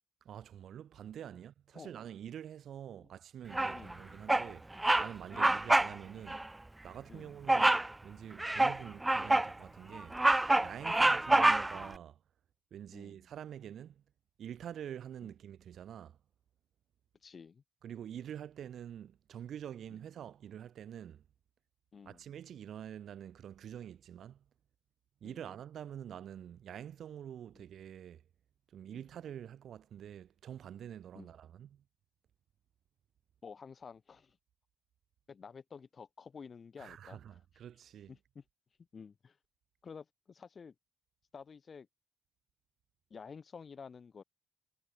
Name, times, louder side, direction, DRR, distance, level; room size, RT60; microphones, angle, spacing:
voice 1, 0.2-6.4 6.8-10.2 10.6-12.2 12.7-14.0 14.4-16.2 17.8-21.2 22.0-24.4 25.2-28.2 28.7-31.8 36.8-38.1, right 9 dB, 65° right, 4.7 m, -46 dB
Bird vocalization bird call bird song, 3.5-3.9 4.3-4.5 4.8-5.1 5.4-5.9 6.3-6.4 7.5-7.9 8.4-9.5 9.9-11.9, right 2 dB, 15° right, 0.6 m, -27 dB
voice 2, 3.7-4.1 5.3-5.7 7.1-7.4 10.9-11.2 12.9-13.2 15.2-15.3 17.2-17.6 19.9-20.0 21.9-22.2 25.2-25.6 27.6-27.7 28.9-29.1 31.1-31.4 33.4-34.4 35.3-37.4 38.1-38.4 38.9-39.4 39.8-40.8 41.3-41.9 43.1-44.2, left 6 dB, 40° left, 3.5 m, -51 dB
cardioid pair, 90°, 0 cm